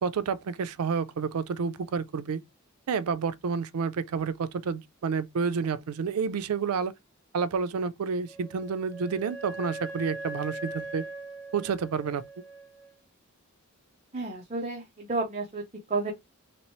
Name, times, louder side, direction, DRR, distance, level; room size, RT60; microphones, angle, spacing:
voice 1, 0.0-2.4 2.9-6.9 7.3-11.1 11.5-12.2, right 5 dB, 85° right, 0.4 m, -29 dB
Wind instrument woodwind instrument, 8.3-12.9, right 2 dB, 30° left, 1.2 m, -40 dB
voice 2, 14.1-15.6 15.9-16.1, right 3 dB, 30° right, 0.7 m, -31 dB
3.2 x 2.9 x 3.0 m
head